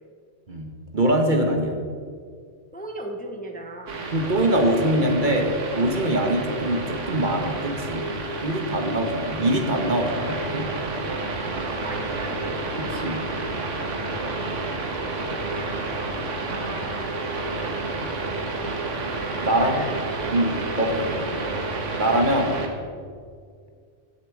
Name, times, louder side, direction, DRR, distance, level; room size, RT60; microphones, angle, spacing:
voice 1, 0.9-1.8 4.1-8.0 8.4-10.6 12.8-13.2 19.4-19.7 20.3-20.9 22.0-22.6, right 1 dB, 45° right, 3 dB, 1.3 m, -23 dB
voice 2, 2.7-4.0 11.7-12.6 16.4-17.1 19.6-20.0 20.8-21.5, right 1 dB, 10° left, 3 dB, 0.9 m, -36 dB
sound 1, 3.9-22.7, right 3 dB, 90° right, 1.7 m, -30 dB
16.0 x 7.4 x 4.7 m, 2.1 s
omnidirectional pair, 1.2 m